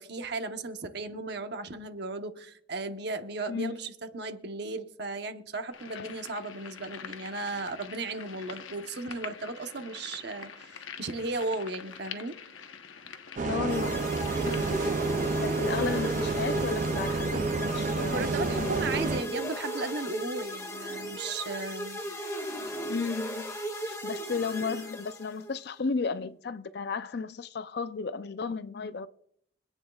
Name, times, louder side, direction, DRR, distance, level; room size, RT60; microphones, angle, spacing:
voice 1, 0.0-12.4 14.4-14.8 18.1-22.0, right 3 dB, 55° right, 1.0 m, -36 dB
sound 1, 5.7-14.9, left 7 dB, 90° left, 0.9 m, -45 dB
voice 2, 13.4-14.1 15.4-18.3 18.6-18.8 22.9-23.5 23.9-29.1, left 4 dB, 55° left, 0.5 m, -34 dB
Bus, 13.4-19.2, right 3 dB, 40° right, 0.4 m, -29 dB
sound 2, 13.7-25.5, equal, 15° left, 1.4 m, -36 dB
25.0 x 9.1 x 2.3 m
head